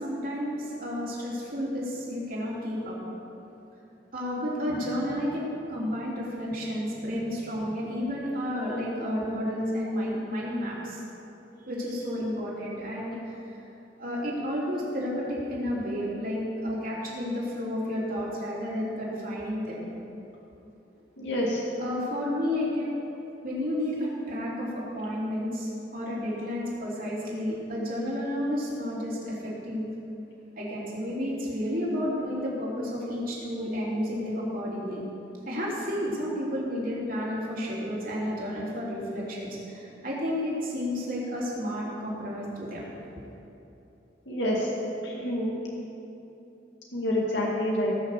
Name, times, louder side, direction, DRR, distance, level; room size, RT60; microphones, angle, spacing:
voice 1, 0.0-3.0 4.1-11.0 11.7-13.2 14.0-19.8 21.8-22.9 23.4-29.9 30.6-35.0 35.5-42.9, equal, 50° right, -5 dB, 3.5 m, -31 dB
voice 2, 21.2-21.6 44.3-44.7 45.0-45.5 46.9-47.9, left 1 dB, 80° left, -3 dB, 2.1 m, -27 dB
19.5 x 6.5 x 6.7 m, 2.8 s
head